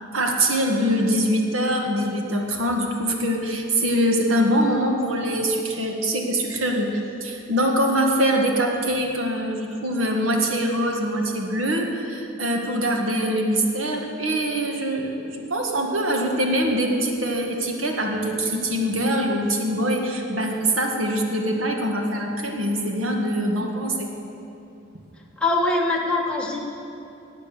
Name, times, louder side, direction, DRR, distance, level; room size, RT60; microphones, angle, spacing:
voice 1, 0.1-24.1, equal, 80° right, 1 dB, 1.8 m, -23 dB
voice 2, 25.4-26.6, left 2 dB, 5° left, -2 dB, 1.4 m, -22 dB
18.0 x 8.2 x 6.9 m, 2.7 s
head